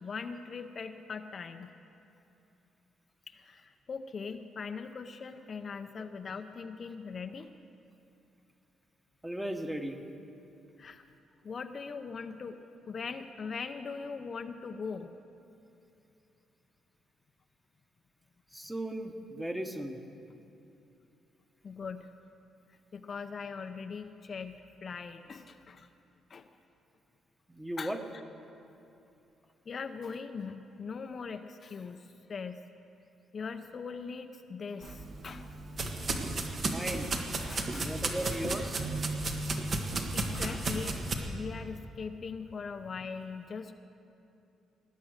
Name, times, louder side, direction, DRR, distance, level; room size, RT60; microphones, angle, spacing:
voice 1, 0.0-1.7 3.3-7.5 10.8-11.0 11.4-12.6 12.9-15.1 21.6-22.1 22.9-25.9 26.3-26.5 27.8-27.9 29.7-32.6 33.3-35.5 37.4-37.9 38.6-38.7 40.1-41.0 41.3-43.7, left 5 dB, 45° left, 7 dB, 0.6 m, -41 dB
voice 2, 9.2-10.0 18.5-20.0 27.5-28.0 36.6-37.1 37.7-38.8, right 1 dB, 10° right, 5 dB, 1.2 m, -36 dB
sound 1, 34.8-41.1, right 2 dB, 50° right, 1.6 m, -34 dB
19.0 x 9.3 x 6.5 m, 2.8 s
cardioid pair, 90°, 0 cm